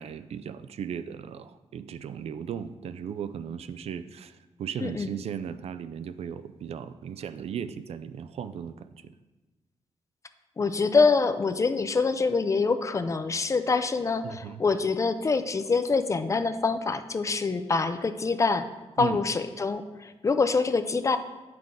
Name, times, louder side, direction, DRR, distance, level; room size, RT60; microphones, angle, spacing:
voice 1, 0.0-9.1 14.2-14.6 19.0-19.2, right 8 dB, 70° right, 12 dB, 0.4 m, -36 dB
voice 2, 10.6-18.7 19.0-21.2, left 4 dB, 30° left, 10 dB, 0.4 m, -25 dB
8.8 x 5.9 x 3.7 m, 1.2 s
wide cardioid pair, 130°, 11 cm